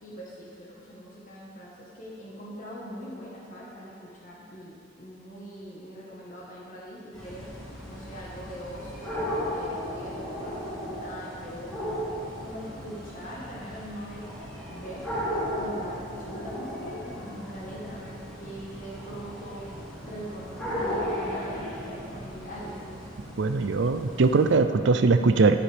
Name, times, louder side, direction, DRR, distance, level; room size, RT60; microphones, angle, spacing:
voice 1, 0.0-12.0 12.4-14.3 14.7-15.0 15.5-23.1, equal, 40° left, -5 dB, 1.4 m, -42 dB
sound 1, 7.1-24.5, equal, 5° left, 2.8 m, -36 dB
voice 2, 23.4-25.5, right 4 dB, 60° right, 9 dB, 0.5 m, -21 dB
11.0 x 9.7 x 3.5 m, 2.3 s
head